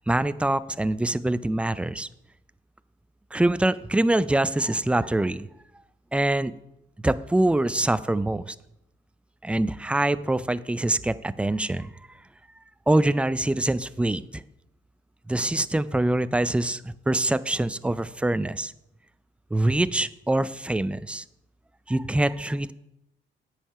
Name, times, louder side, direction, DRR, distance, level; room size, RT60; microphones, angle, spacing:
voice 1, 0.1-2.1 3.3-5.5 6.1-6.5 7.0-8.6 9.4-11.9 12.9-14.4 15.3-18.7 19.5-21.2 21.9-22.7, right 1 dB, 5° right, 15 dB, 0.4 m, -24 dB
9.0 x 6.7 x 5.6 m, 0.84 s
cardioid pair, 90°, 20 cm